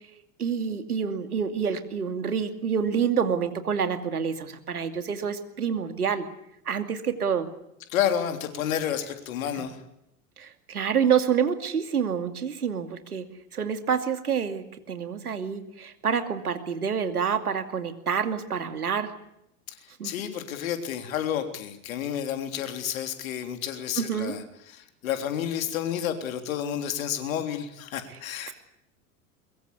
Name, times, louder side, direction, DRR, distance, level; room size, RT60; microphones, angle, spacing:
voice 1, 0.4-6.2 6.7-7.5 9.6-9.7 10.4-13.3 13.5-19.1 20.0-20.1 24.0-24.4 28.5-28.6, right 7 dB, 80° right, 8 dB, 2.6 m, -27 dB
voice 2, 7.9-9.8 19.7-28.5, left 9 dB, 65° left, 7 dB, 3.6 m, -30 dB
23.0 x 22.0 x 8.4 m, 0.81 s
figure-of-eight pair, 85°, 45 cm